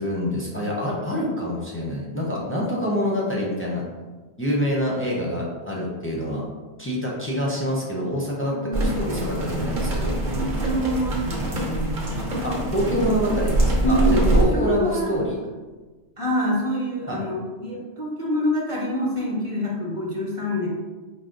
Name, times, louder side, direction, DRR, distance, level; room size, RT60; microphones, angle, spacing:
voice 1, 0.0-3.8 4.4-6.5 6.8-10.2 12.4-15.4 17.1-17.2, equal, 15° left, -4 dB, 0.5 m, -26 dB
voice 2, 8.4-9.3 10.3-12.0 12.9-13.1 13.8-15.1 16.2-20.7, equal, 30° right, -4 dB, 0.9 m, -26 dB
sound 1, 8.7-14.4, right 1 dB, 55° right, 0.9 m, -24 dB
4.7 x 2.0 x 3.8 m, 1.3 s
omnidirectional pair, 1.2 m